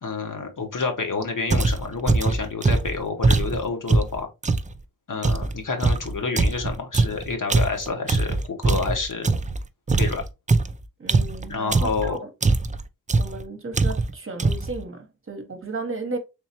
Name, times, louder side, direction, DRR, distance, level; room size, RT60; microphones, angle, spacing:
voice 1, 0.0-4.3 5.1-9.4 10.0-10.2 11.5-12.2, left 4 dB, 60° left, 1.2 m, -28 dB
sound 1, 1.5-4.7 5.2-9.6 9.9-12.1 12.4-12.8 13.1-13.4 13.7-14.1 14.4-14.8, right 3 dB, 20° right, 0.4 m, -22 dB
voice 2, 11.0-12.3 13.2-16.2, right 3 dB, 40° right, 0.9 m, -34 dB
3.6 x 3.1 x 2.9 m
cardioid pair, 55°, 35 cm